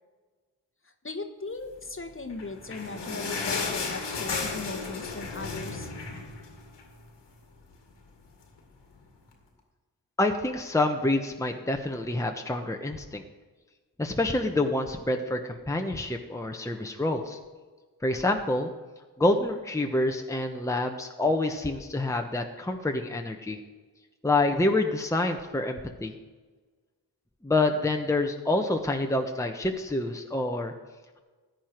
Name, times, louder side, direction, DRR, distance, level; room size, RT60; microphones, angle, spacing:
voice 1, 1.0-5.9, left 3 dB, 30° left, 6 dB, 1.3 m, -38 dB
sound 1, 2.2-7.0 7.4-7.5 7.7-7.9 8.6-8.7, left 4 dB, 85° left, 1.9 m, -34 dB
voice 2, 10.2-13.2 14.0-17.4 18.0-18.7 19.2-23.6 24.2-26.2 27.4-30.7, left 2 dB, 5° left, 3 dB, 1.1 m, -27 dB
14.5 x 9.3 x 4.6 m, 1.4 s
cardioid pair, 45°, 41 cm